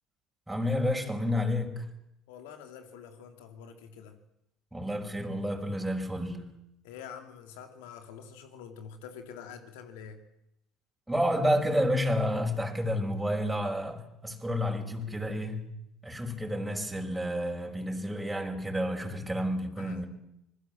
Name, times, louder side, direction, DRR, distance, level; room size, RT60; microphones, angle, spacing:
voice 1, 0.5-1.9 4.7-6.5 11.1-15.7 16.0-20.1, equal, 10° right, 5.4 m, -30 dB
voice 2, 2.3-4.2 6.8-10.2 19.8-20.0, left 7 dB, 70° left, 3.0 m, -46 dB
27.0 x 20.5 x 7.7 m
figure-of-eight pair, 60°, 0 cm